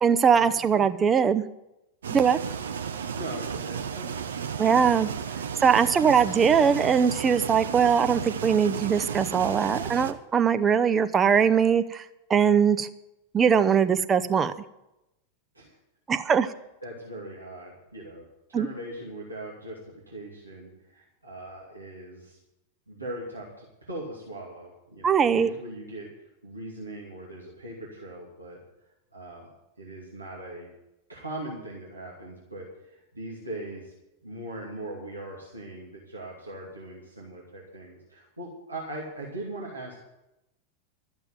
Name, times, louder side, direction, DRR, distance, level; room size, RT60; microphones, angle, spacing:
voice 1, 0.0-1.4 2.1-2.4 4.6-5.1 5.6-12.0 12.3-12.9 13.3-14.5 16.1-16.5 18.5-18.7 25.0-25.5, right 7 dB, 20° right, 11 dB, 0.7 m, -21 dB
sound 1, 2.0-10.1, right 7 dB, 65° right, 0.8 m, -33 dB
voice 2, 3.1-4.1 15.5-15.7 16.8-19.8 20.1-22.4 22.9-26.1 26.4-28.6 29.1-29.5 29.8-30.7 31.1-33.9 34.2-40.0, right 1 dB, 80° right, -4 dB, 2.5 m, -40 dB
13.0 x 7.1 x 9.4 m, 0.92 s
figure-of-eight pair, 90°, 0 cm